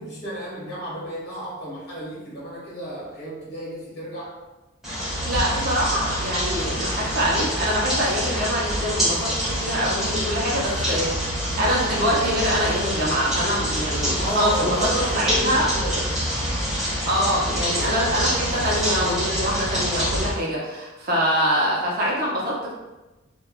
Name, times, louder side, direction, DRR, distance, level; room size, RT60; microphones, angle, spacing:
voice 1, 0.0-4.4 14.2-16.2, equal, 50° left, -7 dB, 1.4 m, -32 dB
sound 1, 4.8-20.3, equal, ahead, 1.3 m, -26 dB
voice 2, 5.2-11.1 11.5-14.9 15.1-15.7 17.1-22.7, equal, 45° right, -4 dB, 0.8 m, -24 dB
3.4 x 2.4 x 2.2 m, 1.1 s
head